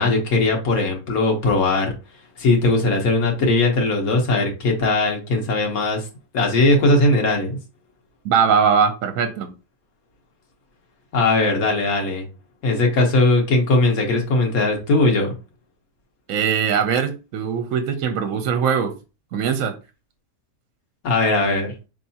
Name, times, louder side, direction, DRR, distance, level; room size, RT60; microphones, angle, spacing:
voice 1, 0.0-1.9 2.4-6.0 6.3-7.6 11.1-12.2 12.6-15.3 21.0-21.7, left 2 dB, 80° left, 1.5 m, -19 dB
voice 2, 8.2-9.5 16.3-18.9 19.3-19.8, right 7 dB, 70° right, 1.0 m, -21 dB
4.6 x 3.3 x 2.7 m
omnidirectional pair, 1.5 m